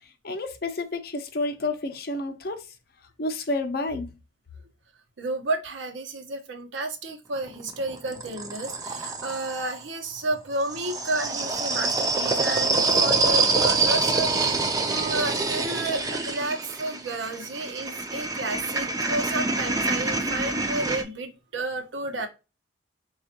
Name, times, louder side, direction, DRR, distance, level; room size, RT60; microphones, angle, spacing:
voice 1, 0.2-2.6 3.2-4.1, left 2 dB, 55° left, 0.6 m, -30 dB
voice 2, 5.2-22.3, right 2 dB, 80° right, 0.8 m, -31 dB
sound 1, 7.4-9.8 10.6-21.0, right 3 dB, 20° right, 0.4 m, -26 dB
4.2 x 2.4 x 2.7 m
head